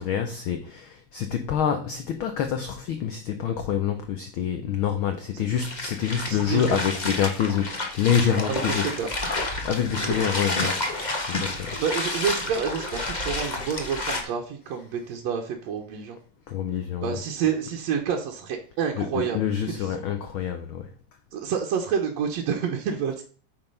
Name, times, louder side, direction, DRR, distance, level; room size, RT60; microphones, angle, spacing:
voice 1, 0.0-8.8 9.6-10.8 11.3-11.8 16.5-17.2 19.0-20.9, left 8 dB, 85° left, 1.1 m, -26 dB
sound 1, 5.5-14.2, left 2 dB, 30° left, 0.7 m, -30 dB
voice 2, 6.2-6.8 8.5-9.2 11.8-16.2 17.0-19.4 19.8-19.9 21.3-23.2, right 7 dB, 70° right, 2.2 m, -28 dB
8.8 x 5.9 x 5.5 m
omnidirectional pair, 3.3 m